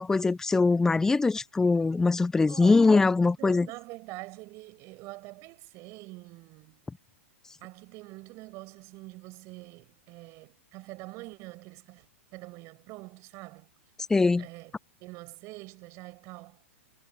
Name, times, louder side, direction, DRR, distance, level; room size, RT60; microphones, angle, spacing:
voice 1, 0.0-3.7 14.1-14.5, left 3 dB, 5° left, 0.3 m, -22 dB
voice 2, 2.5-2.9 3.4-6.9 7.6-13.7 14.4-14.7 15.0-16.6, right 23 dB, 40° right, 6.6 m, -45 dB
hypercardioid pair, 115°, 7 cm